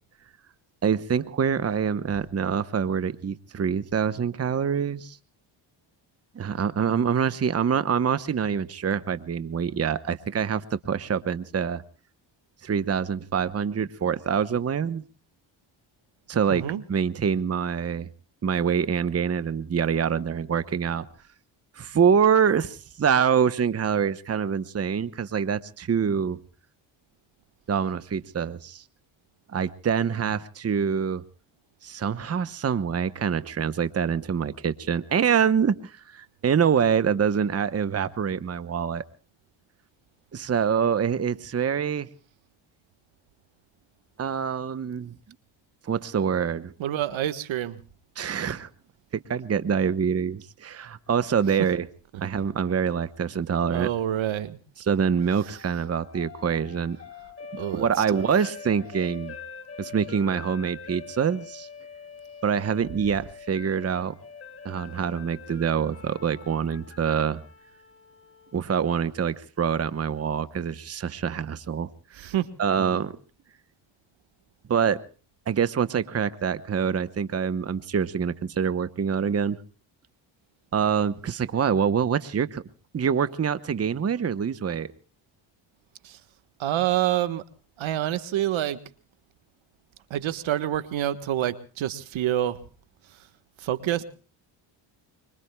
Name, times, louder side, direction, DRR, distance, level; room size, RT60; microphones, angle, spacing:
voice 1, 0.8-5.2 6.3-11.8 12.6-15.0 16.3-18.1 18.4-21.1 21.7-26.4 27.7-28.8 29.5-31.2 31.8-39.0 40.3-42.1 44.2-45.1 45.8-46.7 48.2-48.7 49.1-51.9 52.2-53.9 54.8-57.0 57.7-59.4 59.8-61.7 62.4-64.1 64.6-67.4 68.5-72.3 72.6-73.2 74.7-75.0 75.5-79.6 80.7-82.6 82.9-84.9, right 7 dB, 30° right, 1.0 m, -25 dB
voice 2, 16.5-16.8 46.8-47.8 53.7-54.6 57.6-58.2 72.2-72.5 72.8-72.9 86.0-86.2 86.6-87.4 87.8-88.8 90.1-92.6 93.6-94.0, right 12 dB, 70° right, 1.5 m, -27 dB
sound 1, 55.0-69.1, left 6 dB, 25° left, 3.0 m, -45 dB
25.5 x 24.5 x 2.3 m
cardioid pair, 90°, 48 cm